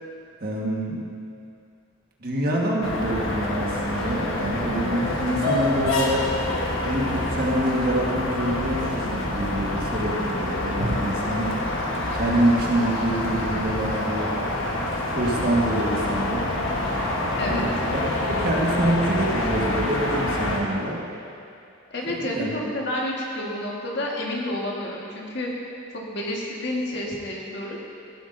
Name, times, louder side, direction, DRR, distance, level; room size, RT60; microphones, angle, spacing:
voice 1, 0.4-1.1 2.2-6.3 6.8-11.5 12.1-14.4 15.1-16.4 17.4-18.0 18.3-21.0 22.0-22.5, right 1 dB, 50° right, -3 dB, 1.4 m, -26 dB
sound 1, 2.8-20.6, left 1 dB, 75° left, 1.2 m, -27 dB
voice 2, 21.9-25.5 26.1-27.8, left 1 dB, 55° left, -3 dB, 1.5 m, -29 dB
16.0 x 8.1 x 2.6 m, 2.4 s
head